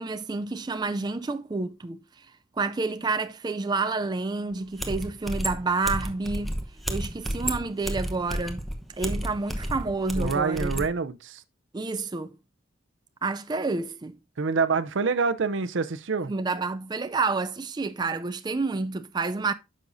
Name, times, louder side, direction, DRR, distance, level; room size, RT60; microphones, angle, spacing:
voice 1, 0.0-2.3 2.6-6.5 6.9-8.6 9.0-10.9 11.7-12.4 13.2-14.2 16.3-19.5, right 3 dB, 20° right, 0.4 m, -29 dB
sound 1, 4.5-4.6 4.8-10.9, equal, ahead, 0.9 m, -31 dB
voice 2, 10.1-11.4 14.4-16.3, right 4 dB, 65° right, 0.6 m, -26 dB
9.7 x 6.3 x 2.6 m
head